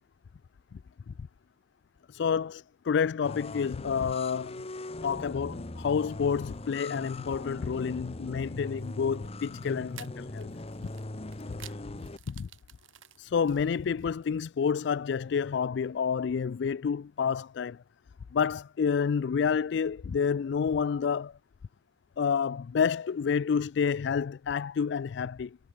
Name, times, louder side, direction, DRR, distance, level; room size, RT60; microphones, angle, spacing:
voice 1, 2.1-4.5 5.0-10.5 11.6-11.7 12.3-12.5 13.2-17.8 18.3-21.3 22.2-25.6, left 6 dB, 60° left, 0.3 m, -29 dB
sound 1, 3.2-12.2, left 2 dB, 30° left, 1.0 m, -40 dB
sound 2, 8.8-9.0 9.9-14.3, right 11 dB, 90° right, 4.3 m, -52 dB
head